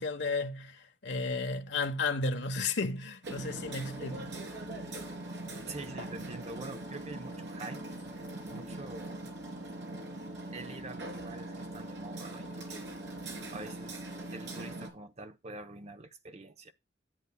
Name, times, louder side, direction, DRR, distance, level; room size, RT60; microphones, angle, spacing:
voice 1, 0.0-4.4, left 3 dB, 65° left, 1.1 m, -33 dB
Hammer, 3.2-14.9, right 1 dB, 75° right, 3.3 m, -41 dB
voice 2, 5.6-7.8 8.1-8.2 8.5-9.3 10.5-12.9 13.5-16.7, right 2 dB, 35° right, 0.9 m, -45 dB
10.5 x 8.2 x 2.3 m
head